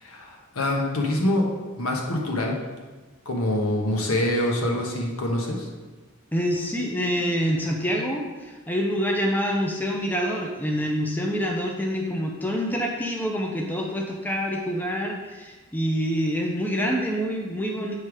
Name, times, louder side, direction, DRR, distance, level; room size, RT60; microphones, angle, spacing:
voice 1, 0.0-1.4 1.8-2.6 3.2-5.7, left 1 dB, 85° left, 0 dB, 1.1 m, -25 dB
voice 2, 6.3-17.9, equal, 10° left, 0 dB, 0.5 m, -26 dB
7.8 x 3.2 x 4.9 m, 1.3 s
head